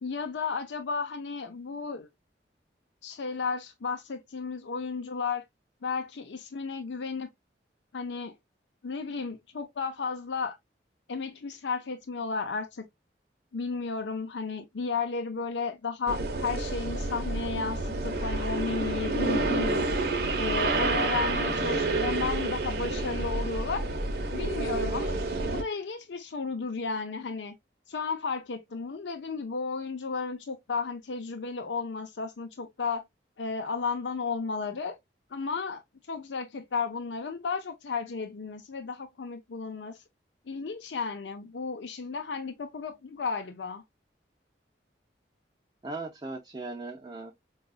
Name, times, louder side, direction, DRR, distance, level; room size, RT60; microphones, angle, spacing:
voice 1, 0.0-2.1 3.0-5.4 5.8-7.3 7.9-8.3 8.8-10.6 11.1-12.8 13.5-19.8 20.4-23.8 24.3-25.1 25.5-27.5 27.9-33.0 33.4-35.0 35.3-35.8 36.1-40.0 40.5-43.8, left 4 dB, 85° left, 0.6 m, -33 dB
sound 1, 16.1-25.6, right 2 dB, 60° right, 0.8 m, -29 dB
voice 2, 19.8-20.2 45.8-47.3, right 3 dB, 25° right, 0.5 m, -39 dB
4.9 x 2.4 x 2.3 m
head